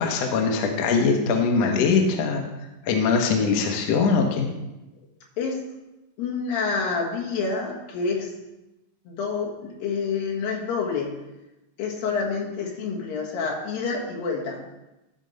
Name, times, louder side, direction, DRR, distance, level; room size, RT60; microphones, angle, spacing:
voice 1, 0.0-2.4 2.9-4.5, left 5 dB, 65° left, 2 dB, 1.8 m, -22 dB
voice 2, 6.2-8.3 9.1-11.1 11.8-14.6, left 5 dB, 80° left, -3 dB, 3.4 m, -28 dB
13.0 x 4.5 x 5.3 m, 0.99 s
omnidirectional pair, 4.1 m